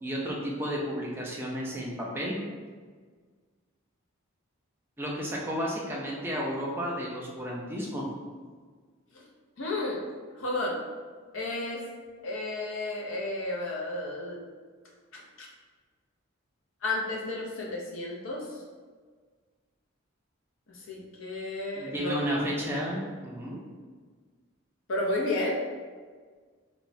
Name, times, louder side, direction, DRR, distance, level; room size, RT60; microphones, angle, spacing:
voice 1, 0.0-2.4 5.0-8.0 21.8-23.6, equal, 10° right, -4 dB, 0.4 m, -32 dB
voice 2, 9.6-10.0 10.4-10.8 11.3-11.9 12.2-14.4 15.1-15.5 16.8-18.5 20.7-22.5 24.9-25.6, left 2 dB, 70° left, -1 dB, 0.5 m, -32 dB
3.0 x 2.1 x 2.5 m, 1.5 s
head